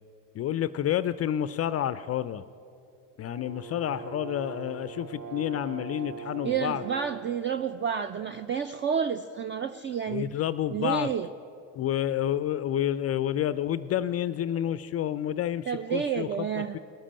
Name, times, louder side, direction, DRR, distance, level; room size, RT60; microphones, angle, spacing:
voice 1, 0.3-2.4 3.2-6.8 10.1-11.1 11.7-16.8, left 11 dB, 35° left, 15 dB, 0.4 m, -29 dB
Brass instrument, 3.2-7.4, right 6 dB, 55° right, 1.7 m, -41 dB
voice 2, 6.4-10.3 10.7-11.3 15.7-16.8, right 7 dB, 25° right, 11 dB, 0.5 m, -30 dB
19.0 x 7.4 x 8.7 m, 2.6 s
supercardioid pair, 90°, 42 cm